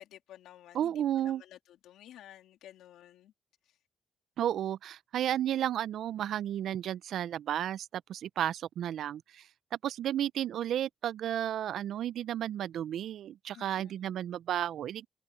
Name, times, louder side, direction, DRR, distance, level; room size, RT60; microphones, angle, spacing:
voice 1, 0.0-0.9 1.2-1.6 1.8-3.3 13.5-13.9, left 12 dB, 85° left, 2.8 m, -52 dB
voice 2, 0.7-1.4 4.4-9.5 9.8-15.1, right 11 dB, 70° right, 0.3 m, -33 dB
open air
cardioid pair, 90°, 0 cm